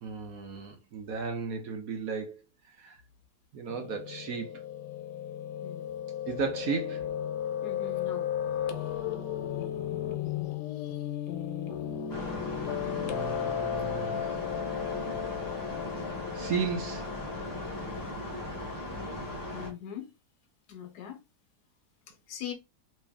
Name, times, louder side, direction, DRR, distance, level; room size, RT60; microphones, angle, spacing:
voice 1, 0.0-2.4 2.8-3.0 3.5-4.6 6.3-7.1 12.8-14.2 16.3-17.1, right 6 dB, 60° right, 1.2 m, -35 dB
Piano, 3.7-18.1, left 10 dB, 85° left, 1.3 m, -35 dB
voice 2, 7.6-8.3 19.5-20.1 20.7-21.2 22.3-22.5, left 9 dB, 70° left, 1.3 m, -40 dB
sound 1, 12.1-19.7, left 1 dB, 15° left, 0.9 m, -38 dB
3.2 x 2.9 x 3.4 m
omnidirectional pair, 1.8 m